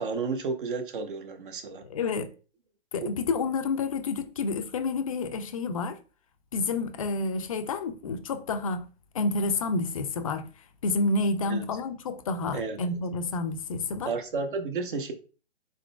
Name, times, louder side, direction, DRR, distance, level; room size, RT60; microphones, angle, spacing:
voice 1, 0.0-1.8 3.0-3.1 11.5-11.6 12.5-12.8 14.1-15.1, right 4 dB, 50° right, 0.9 m, -32 dB
voice 2, 1.9-2.3 2.9-6.0 6.5-8.8 9.1-10.5 10.8-14.1, left 3 dB, 30° left, 0.4 m, -29 dB
4.2 x 3.8 x 2.2 m
figure-of-eight pair, 130°, 34 cm